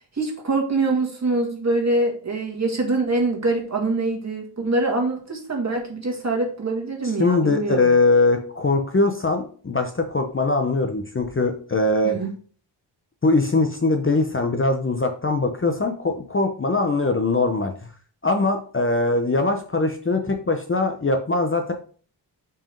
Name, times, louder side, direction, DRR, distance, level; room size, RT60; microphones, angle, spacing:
voice 1, 0.1-8.0 12.0-12.3, right 2 dB, 35° right, 1 dB, 2.0 m, -24 dB
voice 2, 7.2-12.2 13.2-17.7 18.2-21.7, left 3 dB, 30° left, 5 dB, 0.7 m, -21 dB
6.0 x 4.8 x 5.1 m, 0.42 s
wide cardioid pair, 150°, 45 cm